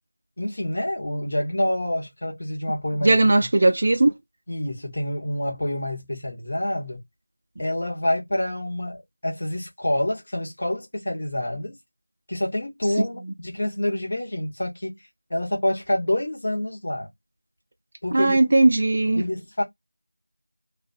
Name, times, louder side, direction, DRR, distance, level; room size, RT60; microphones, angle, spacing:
voice 1, 0.4-3.2 4.5-7.0 7.6-11.8 12.3-15.0 15.3-17.1 18.0-18.4 19.1-19.6, left 1 dB, 40° left, 1.2 m, -27 dB
voice 2, 3.0-4.1 18.1-19.2, right 2 dB, 30° right, 0.3 m, -18 dB
2.4 x 2.2 x 2.8 m
figure-of-eight pair, 175°, 0 cm